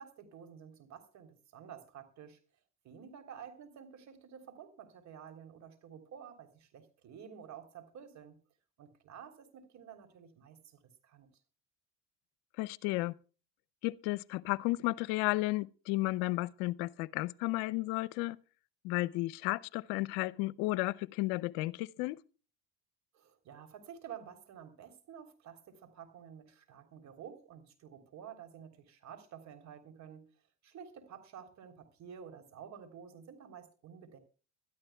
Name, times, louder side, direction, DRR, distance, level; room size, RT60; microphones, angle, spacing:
voice 1, 0.0-2.4 2.8-8.4 8.8-11.3 23.1-30.2 30.6-34.2, right 8 dB, 55° right, 3.5 m, -51 dB
voice 2, 12.6-13.1 13.8-18.4 18.8-22.2, left 20 dB, 75° left, 0.7 m, -33 dB
24.0 x 13.0 x 2.3 m
supercardioid pair, 80°, 33 cm